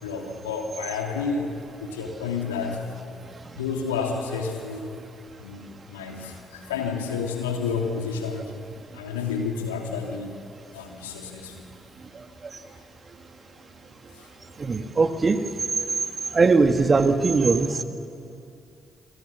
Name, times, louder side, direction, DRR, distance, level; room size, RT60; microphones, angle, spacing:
voice 1, 0.0-1.5 1.8-2.8 3.6-4.8 5.4-5.6 5.9-6.3 6.7-8.5 8.9-10.3 10.7-11.5, left 5 dB, 85° left, 1 dB, 3.0 m, -29 dB
voice 2, 14.6-15.4 16.3-17.8, right 4 dB, 35° right, 7 dB, 2.0 m, -20 dB
28.0 x 24.0 x 7.2 m, 2.6 s
hypercardioid pair, 45°, 0 cm